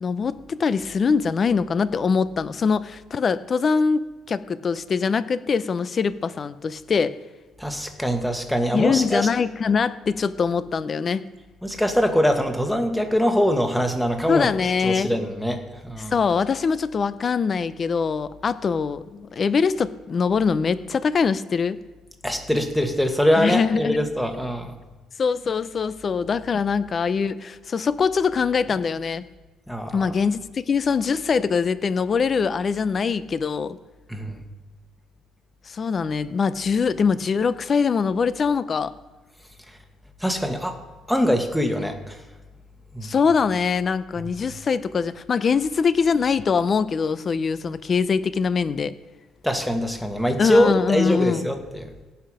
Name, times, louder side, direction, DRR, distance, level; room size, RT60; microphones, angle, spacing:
voice 1, 0.0-7.2 8.7-11.3 14.3-15.1 16.0-21.8 23.4-24.0 25.2-29.2 29.9-33.8 35.7-38.9 43.0-48.9 50.4-51.5, left 5 dB, 40° left, 15 dB, 0.7 m, -23 dB
voice 2, 7.6-9.3 11.6-14.5 14.8-16.1 22.2-24.7 29.7-30.1 34.1-34.4 40.2-40.8 41.1-42.2 42.9-43.1 49.4-51.9, equal, ahead, 4 dB, 1.6 m, -23 dB
17.5 x 5.8 x 5.0 m, 1.3 s
cardioid pair, 100°, 0 cm